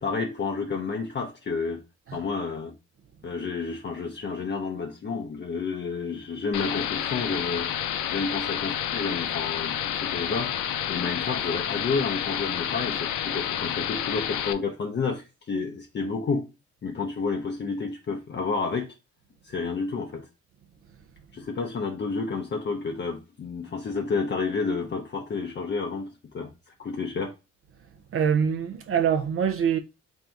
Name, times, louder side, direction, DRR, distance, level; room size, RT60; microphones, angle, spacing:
voice 1, 0.0-1.8 2.1-2.7 3.2-7.7 8.1-10.5 10.9-16.5 16.8-18.9 19.4-20.3 21.3-26.5 26.8-27.3, left 4 dB, 35° left, 0.6 m, -30 dB
sound 1, 6.5-14.5, left 10 dB, 85° left, 0.5 m, -29 dB
voice 2, 28.1-29.8, right 7 dB, 50° right, 0.5 m, -24 dB
3.3 x 2.7 x 4.4 m
cardioid pair, 90°, 30 cm